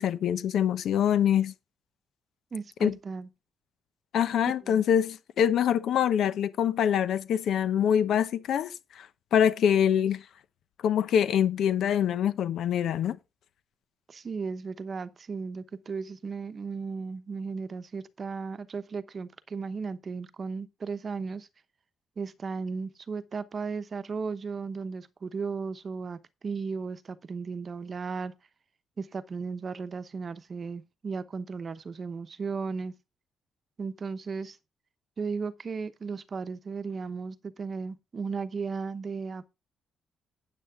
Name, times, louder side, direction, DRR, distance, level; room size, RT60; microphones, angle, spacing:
voice 1, 0.0-1.5 2.8-3.0 4.1-10.2 10.8-13.2, left 9 dB, 70° left, 0.8 m, -25 dB
voice 2, 2.5-3.3 4.6-4.9 14.1-21.5 22.2-28.3 29.0-32.9 33.8-34.6 35.2-39.5, right 5 dB, 40° right, 0.9 m, -35 dB
9.3 x 8.5 x 3.6 m
cardioid pair, 90°, 0 cm